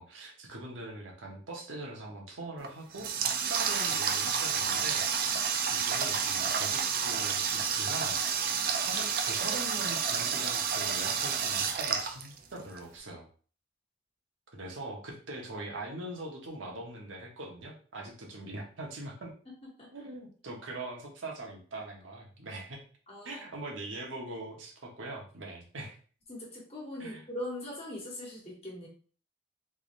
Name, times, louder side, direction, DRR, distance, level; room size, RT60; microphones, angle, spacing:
voice 1, 0.0-8.2 8.7-13.3 14.5-19.3 19.9-22.8 23.2-26.0 27.0-27.2, right 2 dB, 90° right, 0 dB, 1.0 m, -42 dB
Water tap faucet, 2.6-12.8, right 6 dB, 50° right, 0.4 m, -30 dB
voice 2, 23.1-23.4 26.3-28.9, left 1 dB, 30° left, -3 dB, 1.3 m, -41 dB
3.5 x 3.2 x 2.5 m, 0.41 s
head